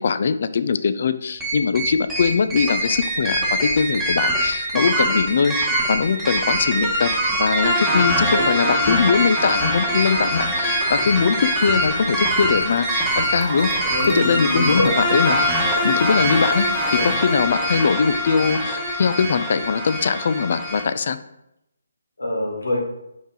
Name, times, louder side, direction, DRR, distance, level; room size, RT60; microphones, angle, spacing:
voice 1, 0.0-7.1 7.4-13.7 14.1-16.7 17.0-21.2, left 5 dB, 50° left, 12 dB, 0.4 m, -21 dB
sound 1, 1.4-20.8, equal, 5° right, 1.2 m, -23 dB
voice 2, 8.2-8.7 9.9-10.0 13.9-14.9 16.9-17.1 22.2-22.8, left 1 dB, 85° left, -2 dB, 2.0 m, -26 dB
Liquid, 11.8-18.5, right 3 dB, 25° right, 1.4 m, -38 dB
5.1 x 5.0 x 3.8 m, 0.84 s
figure-of-eight pair, 150°, 0 cm